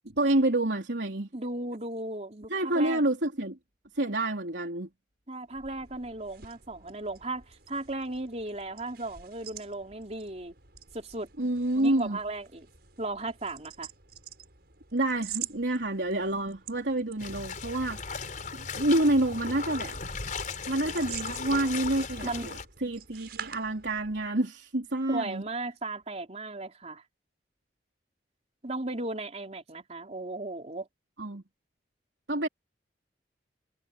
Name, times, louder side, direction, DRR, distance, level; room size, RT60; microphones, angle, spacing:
voice 1, 0.1-1.3 2.5-3.6 4.0-4.9 11.4-12.2 14.9-20.0 20.7-25.4 31.2-31.4 32.3-32.5, right 1 dB, 85° right, 3.6 m, -28 dB
voice 2, 1.3-3.0 5.3-10.6 10.9-12.7 13.0-13.9 22.2-22.5 25.1-27.0 28.6-30.9, right 2 dB, 40° right, 4.0 m, -36 dB
sound 1, 5.4-24.3, right 9 dB, 65° right, 6.9 m, -47 dB
sound 2, 17.2-22.6, left 5 dB, 50° left, 4.5 m, -37 dB
head